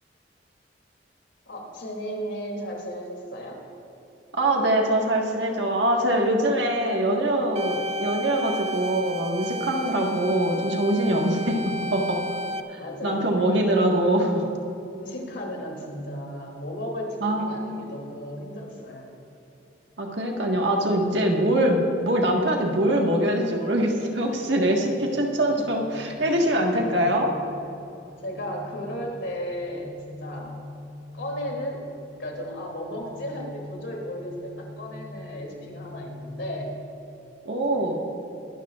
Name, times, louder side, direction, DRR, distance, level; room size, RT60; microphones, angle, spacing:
voice 1, 1.5-3.6 12.8-14.5 14.9-19.1 28.2-30.6 31.1-31.9 32.2-36.7, equal, 85° left, 0 dB, 2.8 m, -35 dB
voice 2, 4.3-12.2 12.7-14.4 17.2-17.6 20.0-27.3 37.4-38.1, right 1 dB, 75° right, 0 dB, 1.6 m, -23 dB
sound 1, 7.6-12.6, equal, 35° right, 0.5 m, -33 dB
sound 2, 24.2-37.0, left 2 dB, 45° left, 2.0 m, -44 dB
22.5 x 12.5 x 2.5 m, 2.9 s
head